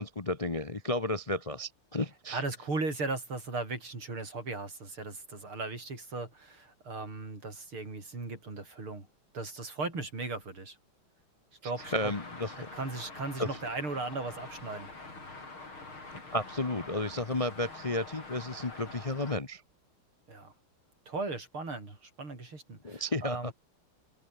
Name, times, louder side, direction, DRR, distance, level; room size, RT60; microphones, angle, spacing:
voice 1, 0.0-2.4 11.9-12.7 13.4-13.5 16.3-19.6 22.8-23.5, left 1 dB, 25° left, 0.8 m, -32 dB
voice 2, 2.3-9.1 9.3-10.8 11.6-12.1 12.7-14.9 20.3-20.5 21.1-23.5, right 3 dB, 75° right, 7.0 m, -37 dB
Traffic noise roadway noise, 11.8-19.4, left 3 dB, 70° left, 6.8 m, -46 dB
omnidirectional pair, 2.4 m